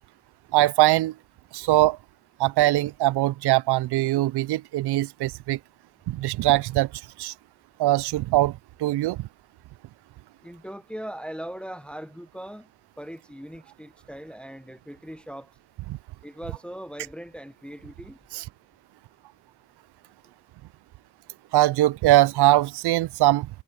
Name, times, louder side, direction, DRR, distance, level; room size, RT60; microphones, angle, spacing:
voice 1, 0.5-1.1 1.5-2.0 2.4-5.6 6.1-6.9 7.2-7.3 7.8-9.3 18.3-18.4 21.5-23.5, right 16 dB, 70° right, 0.5 m, -21 dB
voice 2, 10.4-12.7 13.0-15.5 16.2-18.2, equal, 5° left, 1.1 m, -39 dB
cardioid pair, 85°, 41 cm